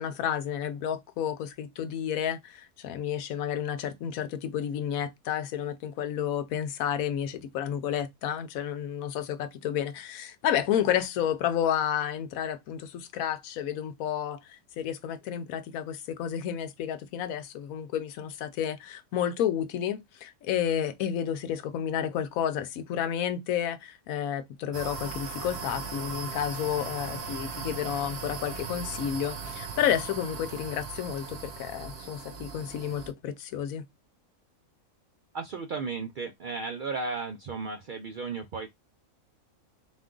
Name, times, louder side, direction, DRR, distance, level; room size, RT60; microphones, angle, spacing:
voice 1, 0.0-33.8, left 9 dB, 80° left, 1.1 m, -31 dB
sound 1, 24.7-33.1, right 4 dB, 55° right, 1.0 m, -38 dB
voice 2, 35.3-38.7, right 4 dB, 75° right, 0.4 m, -34 dB
4.0 x 2.4 x 3.7 m
omnidirectional pair, 1.5 m